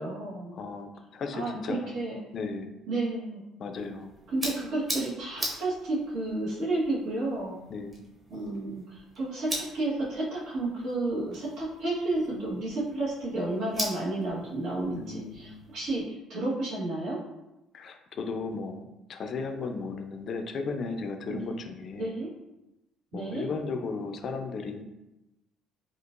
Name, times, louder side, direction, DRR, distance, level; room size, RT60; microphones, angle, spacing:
voice 1, 0.0-0.5 1.3-2.2 2.9-3.4 4.3-7.5 8.3-17.2 21.3-21.4 22.0-22.3 23.1-23.4, right 2 dB, 70° right, -9 dB, 1.3 m, -31 dB
voice 2, 0.5-1.9 2.3-2.7 3.6-4.1 7.7-8.0 14.9-15.7 17.7-22.1 23.1-24.8, left 4 dB, 50° left, 6 dB, 0.4 m, -35 dB
sound 1, 3.7-16.0, equal, 20° right, 1.1 m, -41 dB
4.4 x 2.4 x 2.5 m, 0.95 s
cardioid pair, 100°, 0 cm